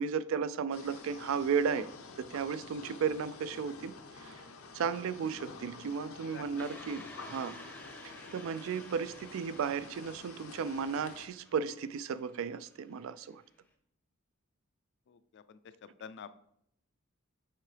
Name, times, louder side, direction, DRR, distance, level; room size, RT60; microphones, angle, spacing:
voice 1, 0.0-1.9 2.2-4.0 4.2-4.4 4.7-7.6 8.0-13.4, right 6 dB, 65° right, 0.3 m, -34 dB
sound 1, 0.7-11.3, left 4 dB, 85° left, 0.7 m, -49 dB
voice 2, 6.3-7.0 15.1-16.4, left 6 dB, 55° left, 0.4 m, -50 dB
sound 2, 6.6-13.7, left 1 dB, 5° left, 0.6 m, -53 dB
7.4 x 4.5 x 3.3 m
head